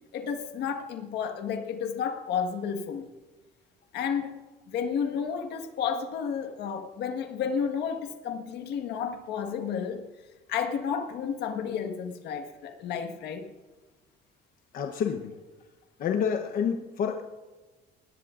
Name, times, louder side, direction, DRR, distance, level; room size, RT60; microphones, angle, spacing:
voice 1, 0.1-3.1 3.9-4.4 4.7-10.1 10.5-13.5, left 7 dB, 75° left, 5 dB, 1.6 m, -31 dB
voice 2, 14.7-15.3 16.0-17.2, left 7 dB, 50° left, 4 dB, 1.0 m, -28 dB
21.0 x 18.5 x 2.6 m, 1.2 s
cardioid pair, 160°, 17 cm